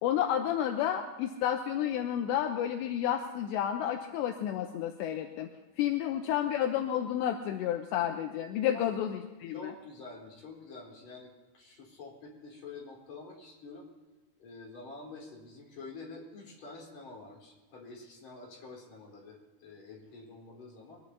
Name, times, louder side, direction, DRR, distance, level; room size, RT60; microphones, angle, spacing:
voice 1, 0.0-5.5 5.8-9.7, left 10 dB, 80° left, 5 dB, 2.8 m, -31 dB
voice 2, 6.0-6.5 8.7-8.9 9.5-13.9 14.4-21.0, left 3 dB, 40° left, -3 dB, 5.1 m, -48 dB
23.0 x 19.5 x 2.8 m, 1.2 s
omnidirectional pair, 5.4 m